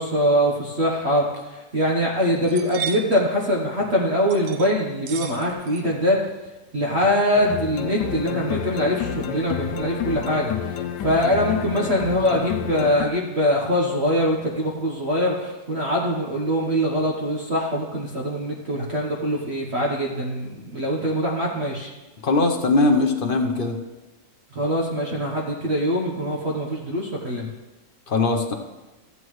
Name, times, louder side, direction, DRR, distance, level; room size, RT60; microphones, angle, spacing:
voice 1, 0.0-6.2 6.7-21.9 24.5-27.5, equal, 45° right, -3 dB, 1.2 m, -23 dB
sound 1, 1.3-1.4 1.8-1.9 2.3-3.2 4.3-4.7 5.1-5.8 6.1-6.5, right 8 dB, 75° right, 1.2 m, -34 dB
sound 2, 7.3-13.1, left 8 dB, 85° left, 1.3 m, -29 dB
voice 2, 22.2-23.8 28.1-28.5, left 3 dB, 45° left, 3 dB, 0.7 m, -20 dB
14.0 x 8.3 x 3.1 m, 1.1 s
omnidirectional pair, 1.8 m